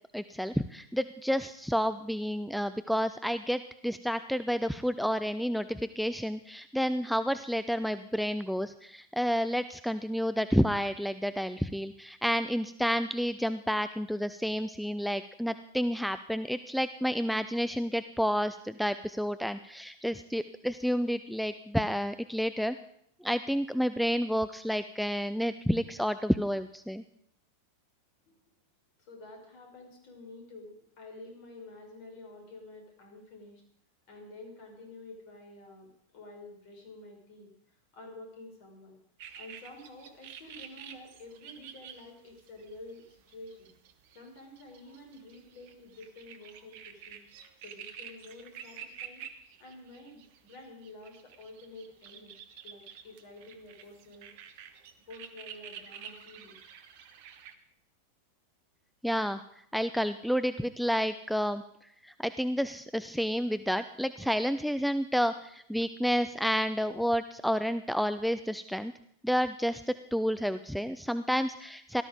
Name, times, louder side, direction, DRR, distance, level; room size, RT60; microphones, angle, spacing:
voice 1, 0.1-22.8 23.2-27.0 59.0-59.4 59.7-61.6 62.0-68.9 69.2-72.0, equal, ahead, 11 dB, 0.5 m, -30 dB
voice 2, 29.0-33.6 34.1-37.5 37.9-39.0 39.4-43.7 44.1-47.2 47.6-49.2 49.6-52.4 52.6-54.3 55.1-56.6, left 2 dB, 45° left, 2 dB, 5.3 m, -49 dB
sound 1, 39.2-57.5, right 8 dB, 50° right, 1.4 m, -49 dB
17.5 x 12.5 x 5.2 m, 0.69 s
figure-of-eight pair, 90°, 0 cm